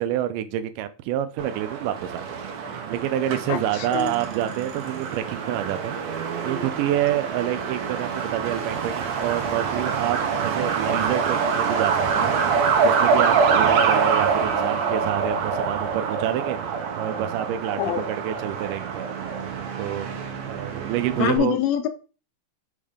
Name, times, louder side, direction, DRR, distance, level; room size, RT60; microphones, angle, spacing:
voice 1, 0.0-2.4 2.9-6.0 6.4-12.3 12.8-16.6 17.0-19.0 19.8-20.1 20.5-21.6, right 12 dB, 85° right, 11 dB, 2.1 m, -27 dB
Truck, 1.4-21.4, right 6 dB, 70° right, 1.8 m, -25 dB
voice 2, 3.5-4.1 17.8-18.1 21.2-21.9, left 11 dB, 85° left, 8 dB, 1.5 m, -25 dB
5.3 x 3.6 x 5.0 m, 0.34 s
omnidirectional pair, 3.7 m